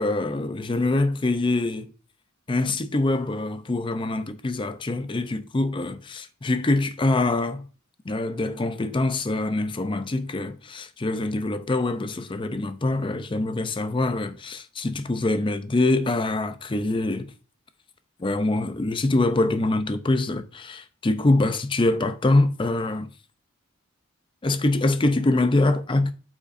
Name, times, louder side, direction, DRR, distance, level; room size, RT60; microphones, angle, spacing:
voice 1, 0.0-1.9 2.5-7.6 8.1-17.3 18.2-23.1 24.4-26.1, left 2 dB, 25° left, 0.5 m, -24 dB
8.0 x 5.9 x 2.5 m
head